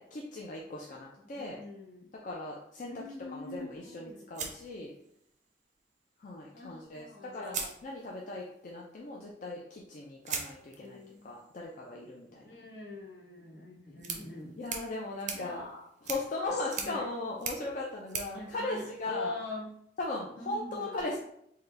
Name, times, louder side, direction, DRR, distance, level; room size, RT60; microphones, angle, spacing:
voice 1, 0.0-1.6 2.2-3.0 3.3-4.9 6.2-12.5 14.6-15.6 16.0-19.3 20.0-21.2, left 2 dB, 45° left, -2 dB, 0.4 m, -38 dB
voice 2, 1.3-2.1 2.9-4.3 6.5-7.7 10.8-11.3 12.4-14.6 15.3-15.9 16.4-17.1 18.3-19.7 20.4-21.0, left 2 dB, 70° left, -3 dB, 1.0 m, -43 dB
sound 1, 4.3-5.5 6.8-6.9 7.4-8.4 10.2-19.4, right 6 dB, 45° right, 0.5 m, -42 dB
3.7 x 2.2 x 3.2 m, 0.72 s
head